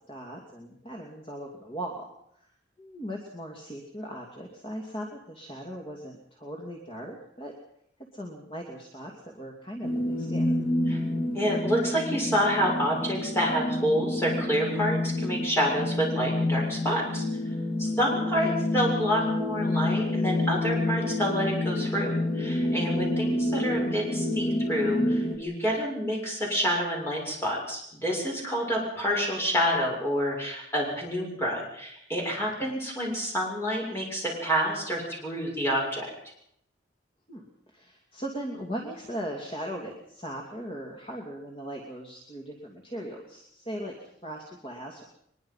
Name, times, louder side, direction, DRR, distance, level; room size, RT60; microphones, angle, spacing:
voice 1, 0.1-2.0 2.4-2.5 2.8-7.5 8.1-10.5 18.0-18.6 22.9-23.1 32.6-32.7 37.3-45.0, equal, 30° left, 0 dB, 2.7 m, -39 dB
sound 1, 9.8-25.4, left 1 dB, 50° left, 3.2 m, -28 dB
voice 2, 11.3-17.2 17.8-36.1, equal, 15° left, -2 dB, 6.9 m, -28 dB
22.5 x 21.5 x 5.7 m, 0.71 s
head